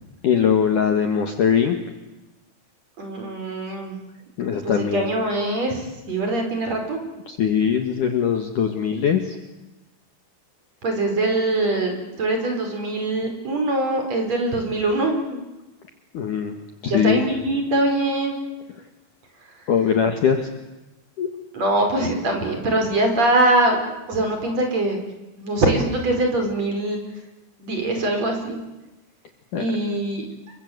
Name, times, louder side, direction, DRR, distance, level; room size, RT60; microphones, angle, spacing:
voice 1, 0.2-1.8 4.4-5.0 7.3-9.4 16.1-16.6 16.8-17.2 19.7-20.5 21.2-21.3 29.5-29.6, left 7 dB, 55° left, 6 dB, 2.5 m, -21 dB
voice 2, 3.0-4.0 4.6-7.0 10.8-15.4 16.8-18.4 21.5-23.8 24.1-25.0 25.4-27.0 27.6-28.6 29.5-30.3, right 2 dB, 35° right, 3 dB, 5.8 m, -23 dB
30.0 x 23.5 x 8.0 m, 1.1 s
omnidirectional pair, 5.4 m